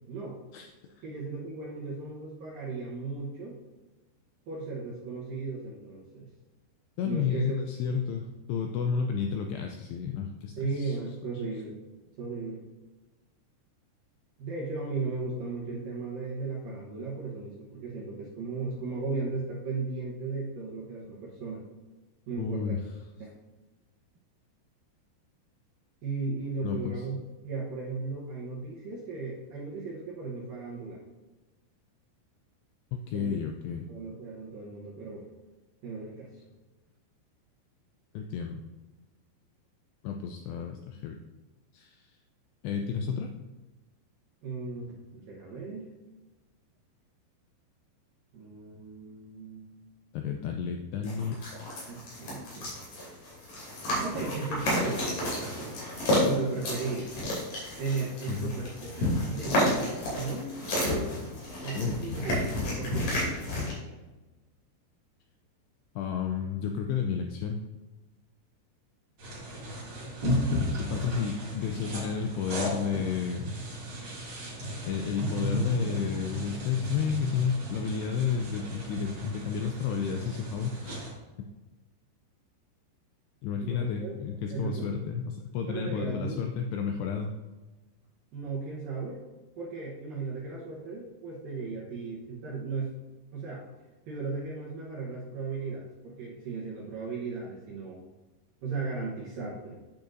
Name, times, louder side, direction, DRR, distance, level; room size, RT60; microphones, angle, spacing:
voice 1, 0.1-0.4 1.0-3.6 4.5-6.3 7.0-7.6 10.6-11.8 12.2-12.7 14.4-21.6 22.3-22.8 23.2-23.3 26.0-27.2 27.4-31.0 33.1-33.4 33.9-35.3 35.8-36.3 44.4-45.9 48.3-49.9 51.9-52.7 54.0-55.7 56.2-57.1 57.8-60.6 61.6-62.4 62.8-63.2 83.6-84.1 84.5-85.0 85.7-86.4 88.3-89.2 89.6-92.9 93.3-93.7 94.1-98.0 98.6-99.8, right 4 dB, 70° right, -5 dB, 2.3 m, -36 dB
voice 2, 7.0-11.0 22.4-22.8 26.6-27.1 33.1-33.9 38.1-38.6 40.0-41.2 41.7-42.1 42.6-43.3 50.1-51.4 58.3-58.5 61.7-62.2 66.0-67.6 70.8-73.5 74.9-81.1 83.4-87.3, left 7 dB, 85° left, 4 dB, 2.4 m, -31 dB
sound 1, 51.0-63.7, left 1 dB, 50° left, 4.0 m, -31 dB
sound 2, 69.2-81.1, equal, 45° right, 1.7 m, -34 dB
8.8 x 8.4 x 2.6 m, 1.2 s
omnidirectional pair, 5.3 m